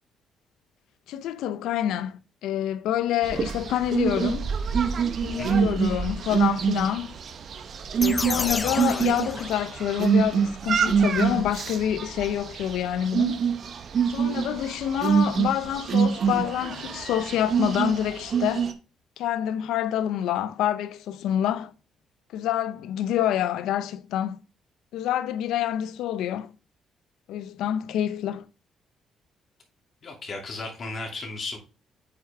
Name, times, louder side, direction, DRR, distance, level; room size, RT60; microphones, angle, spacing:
voice 1, 1.1-4.5 5.2-7.2 8.0-13.4 14.1-18.7 19.2-21.7 22.3-24.4 24.9-26.5 27.3-28.5, left 11 dB, 90° left, 0.5 m, -27 dB
sound 1, 3.2-18.7, right 6 dB, 55° right, 0.9 m, -26 dB
sound 2, 8.0-10.1, left 3 dB, 25° left, 0.5 m, -31 dB
voice 2, 30.0-31.6, left 3 dB, 50° left, 2.6 m, -35 dB
8.1 x 4.7 x 3.5 m
cardioid pair, 90°, 0 cm